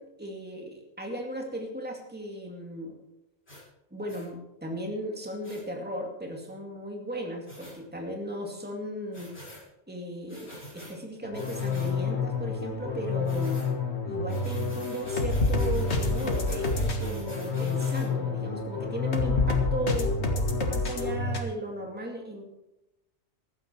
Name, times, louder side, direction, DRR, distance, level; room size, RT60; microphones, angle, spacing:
voice 1, 0.0-3.0 3.9-9.3 9.9-13.6 14.1-22.4, equal, 10° right, 0 dB, 2.4 m, -36 dB
sound 1, 3.5-3.6 4.1-4.3 5.4-5.6 7.5-7.7 9.1-9.6 10.3-10.9 11.3-11.9 13.2-13.7 14.3-18.1, equal, 70° left, 6.7 m, -46 dB
sound 2, 11.2-21.4, left 3 dB, 85° left, 1.9 m, -28 dB
15.0 x 12.0 x 4.6 m, 0.89 s
omnidirectional pair, 1.1 m